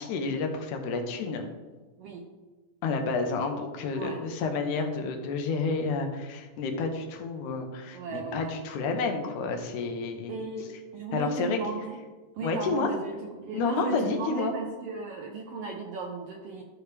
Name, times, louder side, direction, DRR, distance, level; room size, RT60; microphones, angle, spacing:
voice 1, 0.0-1.5 2.8-10.4 11.1-11.6 12.4-12.9 13.5-14.5, left 4 dB, 75° left, 4 dB, 2.3 m, -30 dB
voice 2, 7.9-8.6 10.3-12.0 12.3-16.6, right 4 dB, 85° right, 1 dB, 1.3 m, -36 dB
13.0 x 5.0 x 3.3 m, 1.3 s
omnidirectional pair, 3.7 m